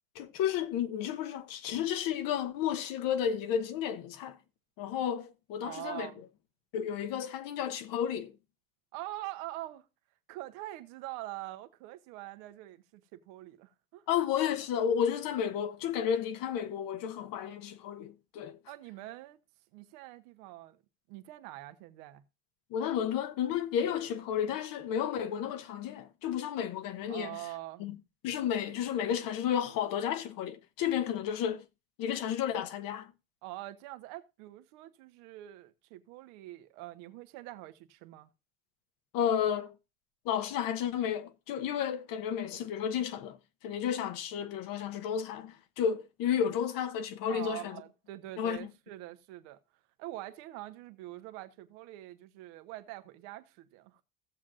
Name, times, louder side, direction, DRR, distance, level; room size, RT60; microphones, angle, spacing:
voice 1, 0.1-4.4 4.8-6.1 6.7-8.3 14.1-18.6 22.7-27.4 27.8-28.0 28.2-31.6 32.0-33.1 39.1-39.7 40.2-43.4 43.6-47.8 48.4-48.7, left 9 dB, 55° left, 1.3 m, -32 dB
voice 2, 5.6-6.2 8.9-9.8 10.3-14.0 18.7-19.4 19.7-20.8 21.1-22.2 27.1-27.8 33.4-38.3 47.3-49.6 50.0-54.0, right 16 dB, 65° right, 1.3 m, -44 dB
15.5 x 7.5 x 2.6 m
hypercardioid pair, 75°, 40 cm